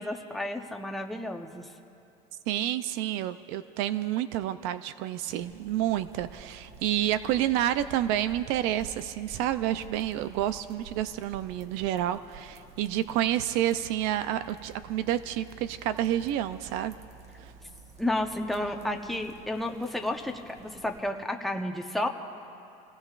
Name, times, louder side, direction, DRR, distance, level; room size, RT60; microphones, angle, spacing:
voice 1, 0.0-1.7 18.0-22.1, left 1 dB, ahead, 2 dB, 0.9 m, -31 dB
voice 2, 2.5-16.9 17.4-17.5, right 12 dB, 75° right, 13 dB, 0.5 m, -29 dB
sound 1, 5.4-21.0, right 5 dB, 35° right, 1.2 m, -51 dB
28.0 x 17.5 x 2.5 m, 2.9 s
cardioid pair, 135°, 18 cm